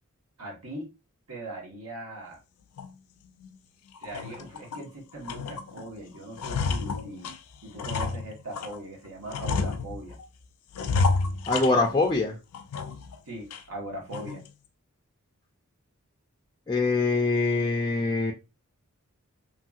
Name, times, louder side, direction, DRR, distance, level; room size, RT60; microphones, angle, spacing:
voice 1, 0.4-0.9 1.3-2.4 4.0-7.3 7.6-10.2 13.2-14.4, right 1 dB, 90° right, -2 dB, 1.2 m, -40 dB
sound 1, 2.8-2.9 3.4-3.5 4.0-4.9 5.2-5.9 6.2-8.8 9.3-10.2 10.7-12.2 12.5-13.2 13.5-13.6 14.1-14.5, left 4 dB, 90° left, 0.4 m, -30 dB
voice 2, 11.5-12.4 16.7-18.3, left 3 dB, 20° left, 1 dB, 0.3 m, -24 dB
3.0 x 2.6 x 2.3 m, 0.27 s
head